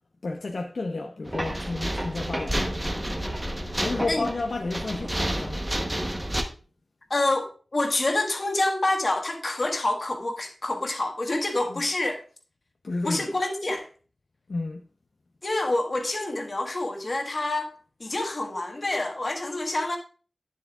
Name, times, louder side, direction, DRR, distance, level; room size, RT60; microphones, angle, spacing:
voice 1, 0.2-2.8 3.7-5.6 11.7-11.8 12.8-13.3 14.5-14.8, left 3 dB, 70° left, 0.6 m, -31 dB
sound 1, 1.3-6.4, right 1 dB, 20° right, 0.9 m, -30 dB
voice 2, 7.1-12.2 13.0-13.9 15.4-17.7 18.0-20.0, left 2 dB, 45° left, 1.4 m, -27 dB
9.5 x 7.1 x 2.3 m
wide cardioid pair, 70°, 0 cm